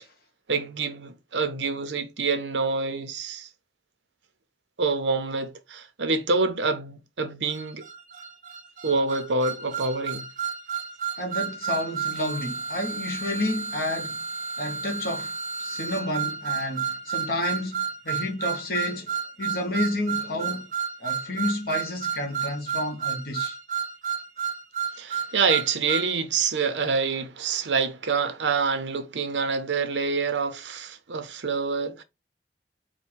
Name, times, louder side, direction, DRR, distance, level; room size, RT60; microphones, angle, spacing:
voice 1, 0.5-3.5 4.8-7.8 8.8-10.3 25.0-32.0, right 4 dB, 85° right, 0.7 m, -26 dB
sound 1, 7.5-26.1, right 6 dB, 45° right, 0.6 m, -32 dB
voice 2, 11.2-14.2 14.6-19.1 19.4-20.7 21.0-23.6, left 1 dB, 55° left, 1.0 m, -30 dB
4.4 x 2.2 x 4.5 m
head